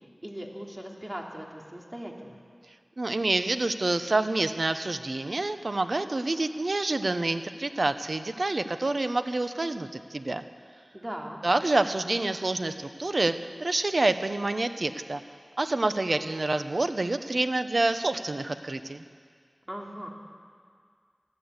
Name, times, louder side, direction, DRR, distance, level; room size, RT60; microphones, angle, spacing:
voice 1, 0.2-2.4 10.9-11.4 19.7-20.1, equal, 25° right, 0 dB, 3.0 m, -39 dB
voice 2, 3.0-10.4 11.4-13.3 13.6-15.2 15.6-19.0, right 2 dB, 65° right, 9 dB, 0.9 m, -27 dB
22.0 x 14.5 x 8.2 m, 2.1 s
wide cardioid pair, 50°, 0 cm